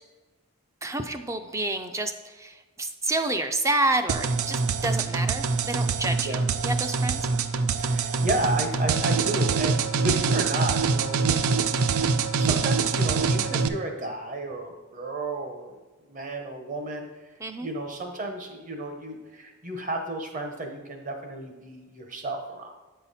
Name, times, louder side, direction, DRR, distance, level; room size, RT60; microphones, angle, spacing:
voice 1, 0.8-7.2 17.4-17.7, right 2 dB, 15° right, 7 dB, 0.3 m, -29 dB
sound 1, 4.1-13.7, right 5 dB, 85° right, 0.4 m, -25 dB
voice 2, 7.8-11.4 11.8-12.0 12.3-15.7 16.1-17.1 17.6-22.7, right 1 dB, 35° right, 3 dB, 1.0 m, -32 dB
8.8 x 5.6 x 4.2 m, 1.2 s
head